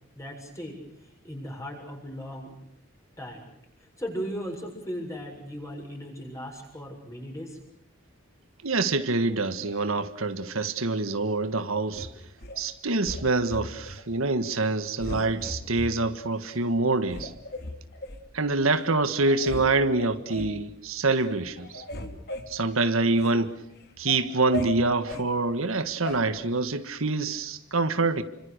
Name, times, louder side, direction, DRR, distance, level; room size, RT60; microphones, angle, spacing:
voice 1, 0.2-2.5 3.2-3.5 3.8-7.6, equal, 15° left, 7.0 m, -37 dB
voice 2, 8.6-12.1 12.6-17.3 18.3-21.8 22.5-23.6 24.0-28.2, right 3 dB, 80° right, 1.6 m, -26 dB
sound 1, 11.9-12.6 13.0-14.0 14.4-14.7 15.0-15.9 16.5-16.6 17.1-18.2 18.8-18.9 19.2-19.7 20.0-20.6 21.0-21.3 21.6-23.4 23.8-25.3 26.1-26.2, left 1 dB, 50° left, 2.9 m, -37 dB
29.0 x 25.5 x 6.7 m
head